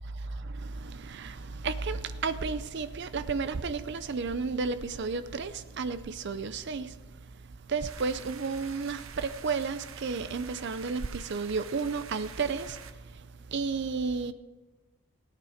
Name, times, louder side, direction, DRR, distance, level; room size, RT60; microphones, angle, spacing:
voice 1, 0.2-7.0 7.7-12.8 13.1-14.3, right 4 dB, 50° right, 0.5 m, -32 dB
sound 1, 7.8-12.9, right 7 dB, 70° right, 1.0 m, -47 dB
17.5 x 9.8 x 5.0 m
head